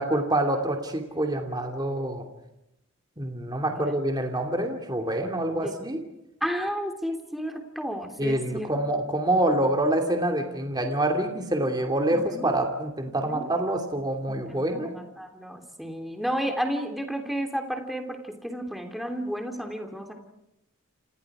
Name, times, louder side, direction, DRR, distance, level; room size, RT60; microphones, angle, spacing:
voice 1, 0.0-2.3 3.2-6.0 8.2-14.9, right 1 dB, 20° right, 3 dB, 2.7 m, -26 dB
voice 2, 3.7-4.0 5.6-5.7 6.4-8.7 12.1-12.5 13.1-13.4 14.3-20.1, equal, ahead, 4 dB, 3.1 m, -32 dB
29.5 x 28.0 x 4.9 m, 0.88 s
head